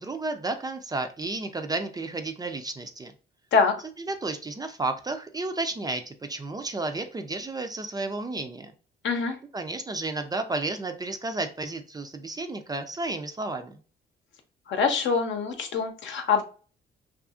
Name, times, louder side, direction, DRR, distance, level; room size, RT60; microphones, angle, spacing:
voice 1, 0.0-3.1 4.0-8.7 9.5-13.8, right 2 dB, 20° right, 6 dB, 0.3 m, -32 dB
voice 2, 9.0-9.4 14.7-16.4, left 5 dB, 70° left, 5 dB, 0.7 m, -24 dB
2.6 x 2.4 x 2.4 m, 0.37 s
cardioid pair, 90°, 20 cm